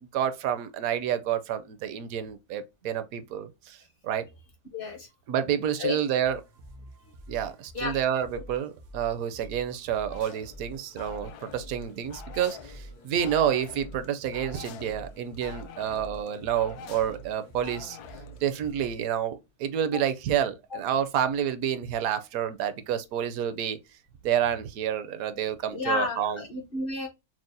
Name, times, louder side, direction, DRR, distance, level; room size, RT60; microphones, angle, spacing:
voice 1, 0.0-4.3 5.3-6.4 7.3-18.0 18.4-23.8 24.2-26.4, right 9 dB, 70° right, 0.9 m, -29 dB
voice 2, 4.7-5.1 5.8-6.0 7.7-8.0 19.9-20.0 25.7-27.1, left 3 dB, 50° left, 0.7 m, -31 dB
sound 1, 6.2-19.1, right 2 dB, 85° right, 1.4 m, -47 dB
sound 2, 10.1-18.7, left 7 dB, 80° left, 1.1 m, -47 dB
6.1 x 2.0 x 2.6 m
omnidirectional pair, 1.7 m